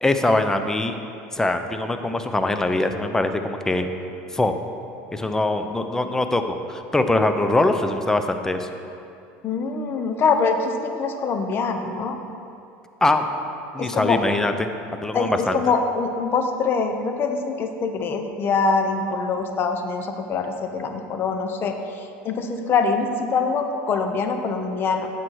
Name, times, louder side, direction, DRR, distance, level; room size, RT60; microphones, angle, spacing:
voice 1, 0.0-1.0 1.3-3.9 4.3-4.5 5.1-8.7 13.0-13.3 13.7-15.6, left 2 dB, 10° left, 7 dB, 0.6 m, -22 dB
voice 2, 9.4-12.2 13.8-14.2 15.1-25.1, left 4 dB, 40° left, 6 dB, 1.0 m, -24 dB
9.7 x 7.5 x 4.7 m, 2.6 s
supercardioid pair, 110°, 6 cm